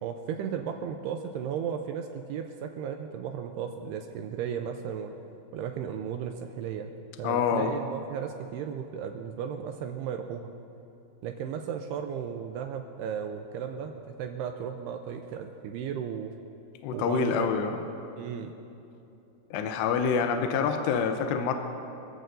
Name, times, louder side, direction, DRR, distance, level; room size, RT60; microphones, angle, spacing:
voice 1, 0.0-5.2 5.5-10.5 11.2-16.3 16.9-17.5 18.2-18.5, right 8 dB, 80° right, 5 dB, 2.5 m, -35 dB
voice 2, 7.2-7.7 16.8-17.8 19.5-21.6, left 6 dB, 80° left, 5 dB, 2.8 m, -26 dB
25.0 x 15.0 x 2.6 m, 2.9 s
omnidirectional pair, 5.1 m